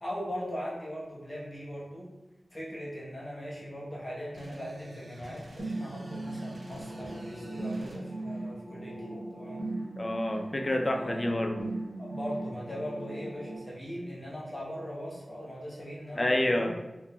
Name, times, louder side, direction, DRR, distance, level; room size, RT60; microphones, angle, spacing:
voice 1, 0.0-2.1 2.5-9.6 10.9-11.3 12.0-16.8, equal, 15° left, -5 dB, 0.9 m, -40 dB
sound 1, 4.3-8.0, right 1 dB, 70° right, 0.4 m, -48 dB
sound 2, 5.6-13.6, right 2 dB, 50° right, 1.0 m, -38 dB
voice 2, 10.0-11.7 16.2-16.8, left 1 dB, 35° left, 3 dB, 0.3 m, -28 dB
3.4 x 2.4 x 2.2 m, 1.0 s
wide cardioid pair, 75°, 0 cm